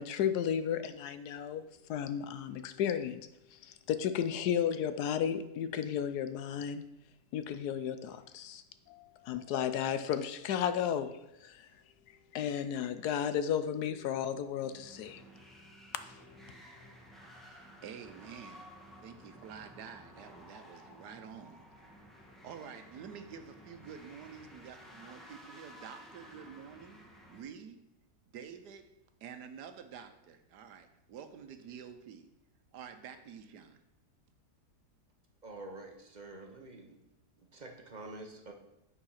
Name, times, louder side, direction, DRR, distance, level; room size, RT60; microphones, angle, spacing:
voice 1, 0.0-3.2 3.5-6.8 7.3-11.7 12.3-15.2 15.9-16.1, left 9 dB, 75° left, 11 dB, 1.1 m, -34 dB
sound 1, 14.5-27.4, equal, ahead, 1.1 m, -54 dB
voice 2, 17.4-18.7 19.0-21.6 22.4-27.0 27.3-27.8 28.3-28.9 29.2-32.3 32.7-33.8, right 7 dB, 75° right, 8 dB, 1.4 m, -49 dB
voice 3, 35.4-37.0 37.4-38.5, right 2 dB, 35° right, 3 dB, 0.8 m, -47 dB
8.9 x 4.8 x 5.6 m, 0.86 s
omnidirectional pair, 1.8 m